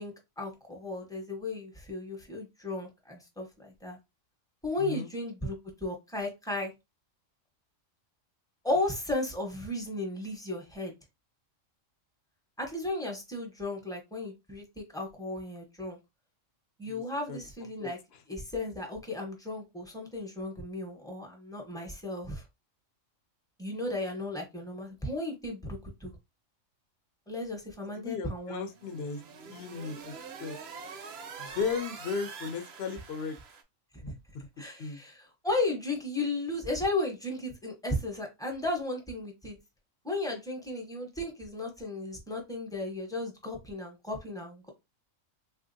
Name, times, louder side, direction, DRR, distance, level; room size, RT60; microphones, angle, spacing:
voice 1, 0.0-4.0 4.6-6.7 8.6-10.9 12.6-16.0 16.8-18.0 18.3-22.4 23.6-26.1 27.3-28.7 31.4-31.5 34.6-39.6 40.0-44.7, left 2 dB, 5° left, 0.6 m, -35 dB
voice 2, 4.8-5.1 16.8-17.0 17.3-17.4 17.8-18.2 27.8-29.2 29.5-30.1 30.4-30.6 31.4-33.4 34.0-34.5 34.8-35.0, left 5 dB, 60° left, 0.7 m, -36 dB
sound 1, 28.6-33.6, right 5 dB, 65° right, 0.8 m, -45 dB
3.5 x 2.5 x 2.6 m
omnidirectional pair, 1.3 m